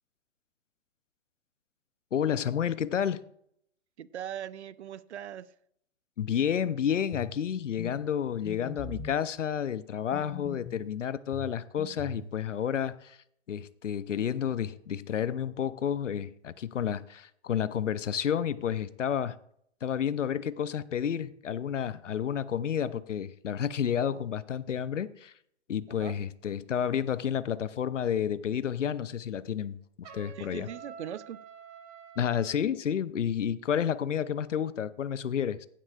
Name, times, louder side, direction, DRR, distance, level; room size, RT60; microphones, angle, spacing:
voice 1, 2.1-3.2 6.2-13.2 13.5-19.4 19.8-25.3 25.7-30.7 32.2-35.7, left 8 dB, 80° left, 0.7 m, -30 dB
voice 2, 4.0-5.5 24.0-24.3 25.9-26.2 30.4-31.4, right 10 dB, 65° right, 0.7 m, -40 dB
sound 1, 7.1-7.4 7.8-7.9 8.4-9.2 10.1-10.9 11.3-12.3, left 4 dB, 10° left, 0.8 m, -41 dB
Trumpet, 30.0-32.6, right 7 dB, 35° right, 1.3 m, -48 dB
16.0 x 9.8 x 2.4 m
figure-of-eight pair, 130°, 36 cm